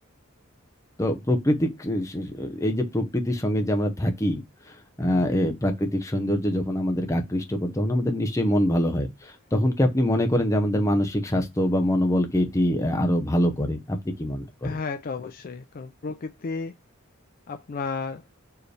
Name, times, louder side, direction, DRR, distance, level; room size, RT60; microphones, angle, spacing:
voice 1, 1.0-4.4 5.0-14.7, equal, 15° left, 0.8 m, -24 dB
voice 2, 5.0-5.3 14.6-16.7 17.5-18.3, left 4 dB, 45° left, 0.4 m, -33 dB
4.6 x 3.1 x 3.2 m
head